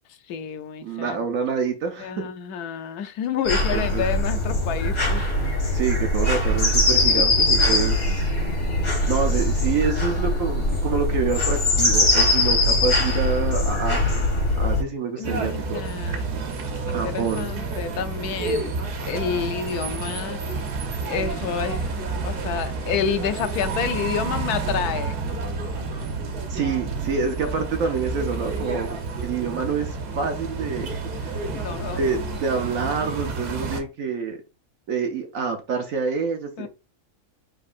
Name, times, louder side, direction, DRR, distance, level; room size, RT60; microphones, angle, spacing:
voice 1, 0.3-1.2 2.0-5.3 7.1-7.2 7.6-7.9 15.2-16.3 16.9-18.8 19.1-20.4 21.0-25.2 31.5-32.4 36.6-36.7, left 7 dB, 80° left, 1.2 m, -29 dB
voice 2, 0.8-2.3 3.7-4.0 5.7-8.3 9.1-14.3 14.6-15.8 16.9-17.5 26.5-31.0 31.4-31.5 31.9-34.4 34.9-36.7, right 5 dB, 65° right, 1.0 m, -27 dB
sound 1, 3.5-14.8, left 1 dB, 65° left, 2.3 m, -21 dB
sound 2, 15.2-33.8, right 3 dB, 90° right, 1.5 m, -30 dB
5.1 x 3.8 x 2.4 m
omnidirectional pair, 1.6 m